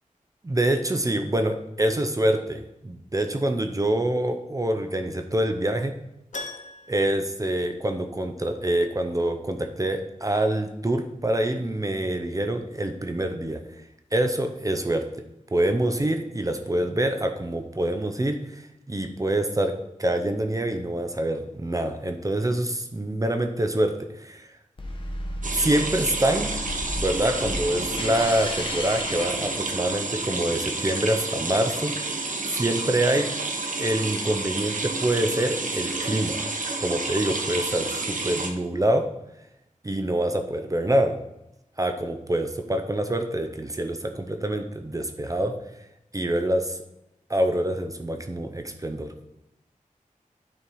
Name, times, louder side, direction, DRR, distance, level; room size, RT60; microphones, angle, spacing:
voice 1, 0.4-5.9 6.9-13.6 14.1-15.0 15.5-19.7 20.0-24.5 25.5-26.5 27.0-32.0 32.5-33.3 33.8-36.4 36.8-39.1 39.8-41.2 41.8-45.5 46.1-46.8 47.3-49.1, right 1 dB, 25° right, 5 dB, 0.7 m, -26 dB
Keyboard (musical), 6.3-8.4 8.6-8.7 11.4-11.5 11.8-11.9, left 2 dB, 65° left, 0.9 m, -41 dB
sound 1, 24.8-30.1, left 1 dB, 40° left, 1.2 m, -34 dB
sound 2, 25.4-38.5, right 3 dB, 70° right, 1.1 m, -30 dB
9.8 x 4.4 x 4.7 m, 0.87 s
wide cardioid pair, 100°, 14 cm